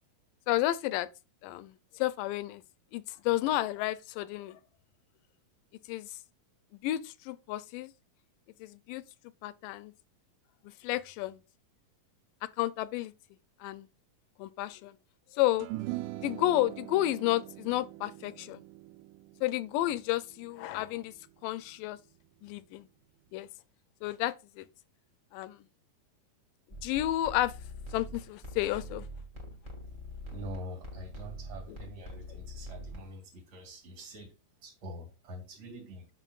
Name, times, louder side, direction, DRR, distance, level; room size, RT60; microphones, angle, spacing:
voice 1, 0.5-1.1 1.4-2.6 2.9-4.6 5.9-6.2 6.8-7.9 8.6-9.0 9.4-9.9 10.6-11.4 12.6-13.1 13.6-13.9 14.4-15.0 15.3-15.7 16.2-18.6 19.4-21.1 21.4-22.0 22.4-22.9 23.3-23.5 24.0-24.7 25.3-25.7 26.8-27.5 27.9-29.1, left 15 dB, 80° left, 2.1 m, -31 dB
sound 1, 15.6-22.1, right 17 dB, 80° right, 1.8 m, -43 dB
sound 2, 26.7-33.1, equal, 25° right, 1.1 m, -44 dB
voice 2, 30.3-36.1, equal, 50° right, 3.2 m, -45 dB
9.0 x 6.2 x 2.4 m
omnidirectional pair, 3.9 m